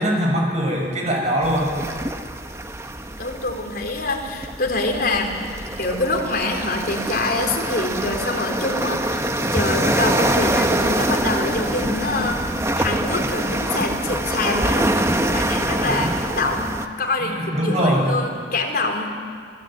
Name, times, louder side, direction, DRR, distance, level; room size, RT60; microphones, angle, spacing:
voice 1, 0.0-1.7 15.8-16.1 17.3-18.1, equal, 40° right, 0 dB, 6.9 m, -22 dB
sound 1, 1.4-16.9, right 1 dB, 15° right, 1.2 m, -24 dB
voice 2, 3.2-5.4 5.8-19.2, left 2 dB, 55° left, 2 dB, 4.1 m, -25 dB
28.0 x 21.5 x 9.1 m, 2.1 s
head